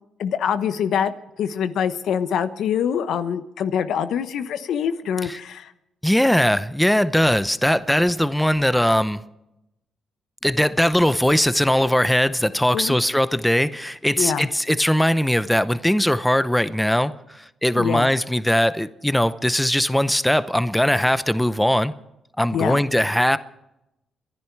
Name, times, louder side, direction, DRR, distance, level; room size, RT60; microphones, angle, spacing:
voice 1, 0.2-1.1 1.4-5.7 12.7-13.0 14.2-14.5 17.7-18.1 22.5-22.8, left 8 dB, 75° left, 12 dB, 1.0 m, -24 dB
voice 2, 6.0-9.2 10.4-21.9 22.4-23.4, equal, 5° left, 14 dB, 0.8 m, -20 dB
28.5 x 10.5 x 4.6 m, 0.88 s
supercardioid pair, 70°, 0 cm